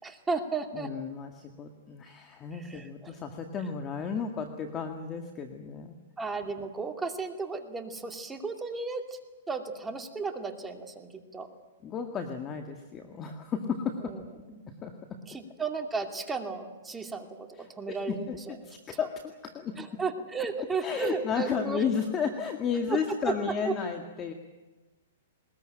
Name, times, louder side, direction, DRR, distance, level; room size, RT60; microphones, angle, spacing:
voice 1, 0.0-0.9 2.5-3.2 6.2-9.2 9.5-11.5 14.0-14.2 14.5-14.6 15.3-18.6 19.8-21.8 22.9-23.0 23.2-23.3 23.6-23.7, right 4 dB, 10° right, 4 dB, 2.5 m, -34 dB
voice 2, 0.7-6.0 11.8-14.1 14.8-15.2 17.6-18.4 18.6-19.8 20.8-24.3, left 6 dB, 25° left, 4 dB, 1.9 m, -33 dB
21.5 x 20.5 x 9.0 m, 1.2 s
hypercardioid pair, 140°, 0 cm